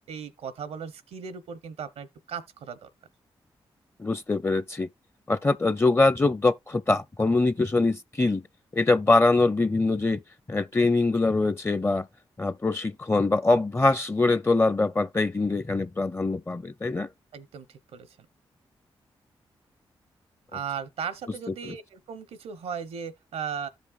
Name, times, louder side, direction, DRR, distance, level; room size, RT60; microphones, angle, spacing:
voice 1, 0.1-2.9 17.3-18.2 20.5-23.7, right 7 dB, 85° right, 0.9 m, -37 dB
voice 2, 4.0-4.9 5.3-8.4 8.7-10.2 10.5-12.1 12.4-17.1, left 3 dB, 25° left, 0.5 m, -23 dB
14.0 x 5.1 x 2.3 m
supercardioid pair, 40°, 10 cm